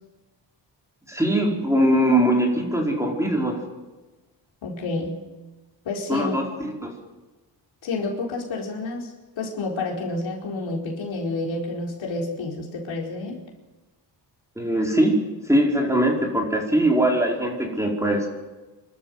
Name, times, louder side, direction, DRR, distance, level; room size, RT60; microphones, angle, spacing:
voice 1, 1.1-3.6 6.1-6.9 14.6-15.1 15.5-18.3, right 1 dB, 5° right, 0 dB, 4.8 m, -21 dB
voice 2, 4.6-5.2 5.8-6.3 6.6-6.7 7.8-13.4, left 3 dB, 85° left, -1 dB, 4.8 m, -29 dB
28.0 x 13.0 x 8.0 m, 1.2 s
cardioid pair, 115°, 45 cm